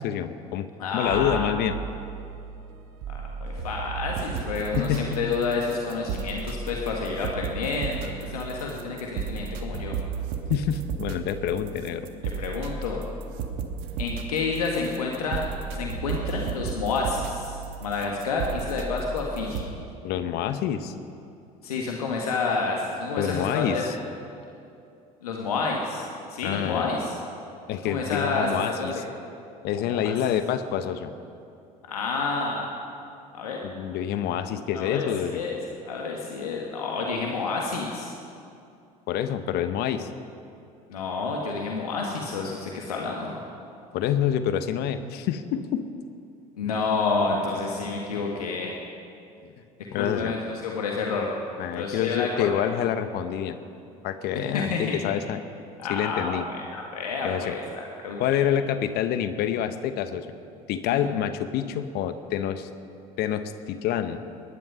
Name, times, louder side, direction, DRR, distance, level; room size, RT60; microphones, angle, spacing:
voice 1, 0.0-0.6 0.9-1.8 4.8-5.4 10.5-12.1 20.0-20.9 23.2-23.9 26.4-26.9 27.7-28.9 29.6-31.1 33.6-35.4 39.1-40.1 43.9-45.8 49.4-49.5 49.9-50.3 51.6-53.6 54.0-55.4 55.9-56.4 57.2-57.6 58.2-60.3 60.7-62.7 63.2-64.2, left 9 dB, 60° left, 10 dB, 1.0 m, -27 dB
voice 2, 0.8-1.4 3.1-9.9 12.3-13.0 14.0-15.4 15.7-19.7 21.6-23.8 25.2-26.0 26.3-27.1 27.8-29.0 29.8-30.1 31.9-32.7 33.3-33.6 34.7-35.6 35.8-38.1 40.9-43.4 46.6-48.7 49.9-51.3 51.7-52.8 54.3-55.1 55.8-58.4 60.9-61.0, left 4 dB, 85° left, 0 dB, 1.5 m, -29 dB
sound 1, 1.1-19.7, right 6 dB, 70° right, 1.4 m, -34 dB
20.5 x 11.0 x 5.6 m, 2.5 s
hypercardioid pair, 65°, 19 cm